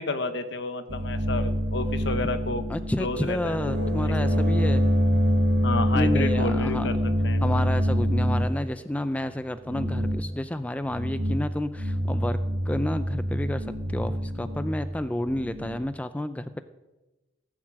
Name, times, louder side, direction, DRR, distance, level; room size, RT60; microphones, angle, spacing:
voice 1, 0.0-2.6 3.0-4.4 5.6-7.4, left 3 dB, 65° left, 9 dB, 1.2 m, -31 dB
sound 1, 0.9-8.6 9.7-10.3 10.9-11.5 11.7-15.8, equal, 60° right, 1.3 m, -25 dB
voice 2, 2.7-4.8 5.9-6.9 7.4-12.4 12.7-16.6, left 1 dB, 5° left, 11 dB, 0.4 m, -30 dB
17.0 x 7.4 x 7.6 m, 1.1 s
head